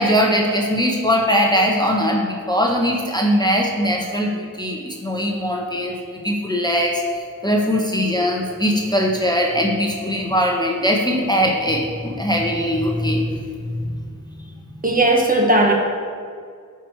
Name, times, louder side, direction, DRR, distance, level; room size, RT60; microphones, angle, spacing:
voice 1, 0.0-6.0 6.2-13.3 13.6-13.7, equal, 10° left, 0 dB, 0.9 m, -20 dB
voice 2, 14.8-15.7, right 1 dB, 25° right, 0 dB, 1.2 m, -16 dB
11.0 x 4.7 x 4.5 m, 2.2 s
wide cardioid pair, 65°, 33 cm